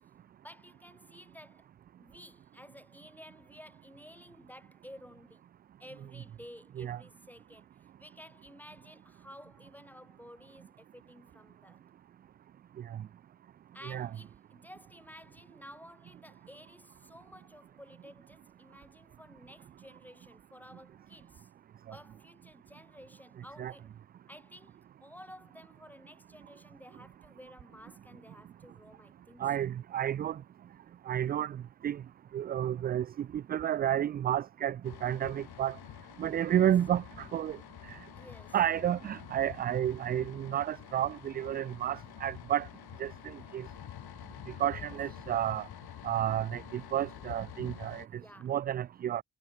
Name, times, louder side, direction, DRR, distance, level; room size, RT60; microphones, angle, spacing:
voice 1, 0.4-1.7 2.0-5.4 5.8-7.7 8.0-11.8 13.7-21.5 21.9-23.9 24.3-29.7 36.3-36.7 38.1-38.6 44.7-44.9 47.9-48.6, equal, 5° left, 6.2 m, -53 dB
voice 2, 29.4-30.4 31.1-31.6 31.8-32.0 32.3-34.8 35.0-35.7 36.2-37.6 38.5-42.7 43.0-43.1 43.5-43.6 44.6-45.6 46.0-48.0 48.4-49.2, right 11 dB, 25° right, 0.3 m, -31 dB
sound 1, 34.8-48.1, left 12 dB, 60° left, 4.5 m, -48 dB
figure-of-eight pair, 40°, 43 cm